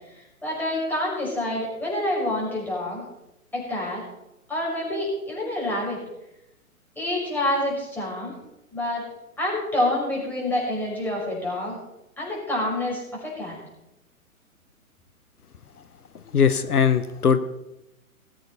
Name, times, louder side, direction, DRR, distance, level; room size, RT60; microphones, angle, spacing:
voice 1, 0.1-3.0 3.5-4.0 4.5-6.0 7.0-8.3 8.7-9.0 9.4-11.8 12.2-13.6, left 1 dB, 5° left, -5 dB, 5.6 m, -27 dB
voice 2, 16.1-17.4, left 6 dB, 85° left, 12 dB, 1.0 m, -20 dB
19.5 x 8.0 x 4.2 m, 0.90 s
hypercardioid pair, 130°, 44 cm